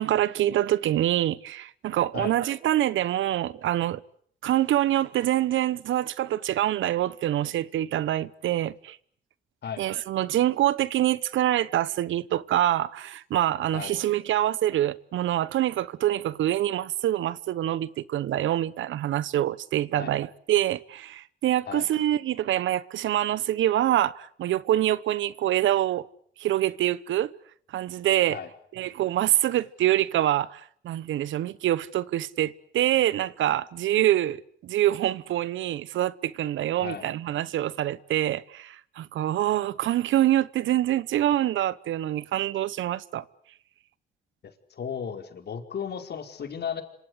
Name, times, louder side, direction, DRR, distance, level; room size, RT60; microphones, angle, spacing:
voice 1, 0.0-4.0 4.4-9.0 9.8-26.0 26.4-27.3 27.7-28.4 28.7-30.6 30.8-43.2, right 13 dB, 75° right, 1.1 m, -25 dB
voice 2, 44.7-46.8, left 7 dB, 55° left, 5.0 m, -34 dB
27.0 x 26.0 x 8.2 m
cardioid pair, 90°, 20 cm